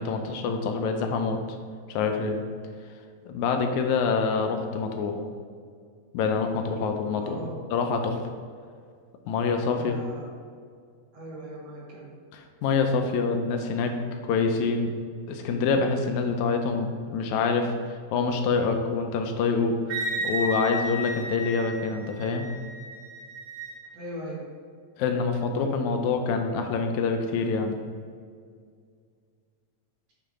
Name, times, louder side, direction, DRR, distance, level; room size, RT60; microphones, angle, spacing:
voice 1, 0.0-1.4 1.9-2.4 3.3-5.2 6.1-7.4 7.7-8.2 9.3-10.0 12.3-13.9 14.2-14.9 15.3-22.5 25.0-27.7, left 4 dB, 80° left, 4 dB, 1.9 m, -26 dB
voice 2, 7.2-7.6 9.7-10.3 11.1-12.1 23.9-24.4, right 1 dB, 60° right, -5 dB, 2.2 m, -39 dB
Wind instrument woodwind instrument, 19.9-23.7, right 1 dB, 80° right, 2.9 m, -33 dB
8.3 x 3.4 x 3.7 m, 2.1 s
omnidirectional pair, 3.4 m